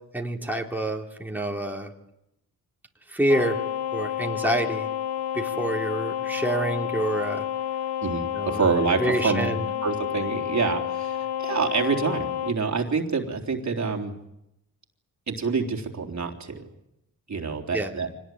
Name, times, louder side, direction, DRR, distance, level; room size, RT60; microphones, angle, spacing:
voice 1, 0.1-1.9 3.1-3.6 3.9-4.9 5.3-7.4 8.3-8.6 9.0-9.6 17.7-17.9, right 1 dB, 5° right, 0 dB, 3.5 m, -27 dB
sound 1, 3.3-12.6, left 10 dB, 90° left, 1.0 m, -30 dB
voice 2, 8.0-9.5 9.8-14.1 15.3-16.7 17.3-18.1, right 5 dB, 45° right, 2 dB, 3.8 m, -27 dB
25.5 x 19.0 x 9.3 m, 0.85 s
cardioid pair, 75°, 37 cm